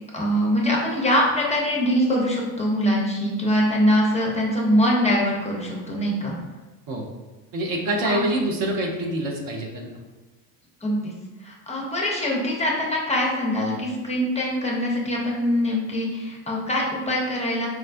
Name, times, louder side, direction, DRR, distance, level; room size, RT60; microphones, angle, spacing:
voice 1, 0.1-6.3 8.0-8.2 10.8-11.1 11.4-17.7, equal, 15° left, -3 dB, 0.6 m, -23 dB
voice 2, 7.5-9.9, right 1 dB, 45° right, 0 dB, 0.7 m, -26 dB
4.6 x 2.1 x 2.5 m, 1.2 s
figure-of-eight pair, 60°, 50 cm